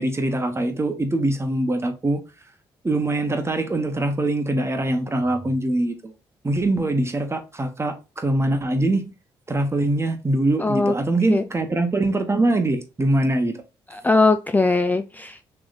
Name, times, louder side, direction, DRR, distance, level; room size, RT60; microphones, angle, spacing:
voice 1, 0.0-2.2 2.8-6.1 6.4-9.1 9.5-13.6, right 2 dB, 25° right, 1.2 m, -23 dB
voice 2, 10.6-10.9 11.3-11.4 13.9-15.5, left 3 dB, 15° left, 0.4 m, -20 dB
3.4 x 3.0 x 4.0 m
hypercardioid pair, 50°, 11 cm